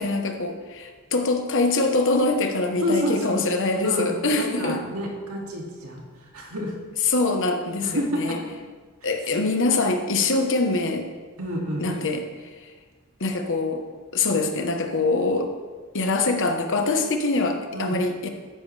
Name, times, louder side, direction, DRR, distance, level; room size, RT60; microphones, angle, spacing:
voice 1, 0.0-4.8 7.0-8.4 9.0-11.1 11.8-12.7 13.2-13.9 14.1-15.5 15.9-18.3, left 3 dB, 60° left, 5 dB, 1.2 m, -24 dB
voice 2, 2.8-3.4 3.8-6.0 6.3-6.7 7.8-8.4 9.0-9.1 11.4-11.9 17.7-18.0, equal, 75° right, -1 dB, 2.4 m, -28 dB
13.5 x 10.0 x 3.4 m, 1.4 s
head